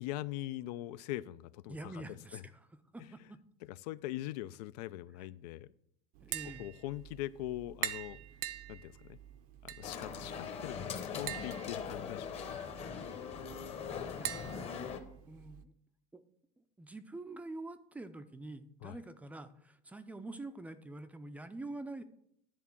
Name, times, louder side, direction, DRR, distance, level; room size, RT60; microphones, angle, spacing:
voice 1, 0.0-2.4 3.0-3.3 3.6-5.7 6.4-8.2 8.7-9.2 9.6-12.6 18.8-19.0, left 15 dB, 90° left, 17 dB, 0.4 m, -42 dB
voice 2, 1.7-2.7 2.9-3.4 5.2-5.3 6.2-6.7 13.3-13.4 14.1-14.7 15.3-15.7 16.1-16.2 16.8-22.0, right 2 dB, 5° right, 10 dB, 0.4 m, -46 dB
Tap, 6.2-15.6, right 12 dB, 70° right, 0.6 m, -45 dB
sound 1, 9.8-15.0, left 7 dB, 30° left, 0.9 m, -41 dB
10.5 x 3.7 x 7.1 m, 0.71 s
cardioid pair, 155°, 20 cm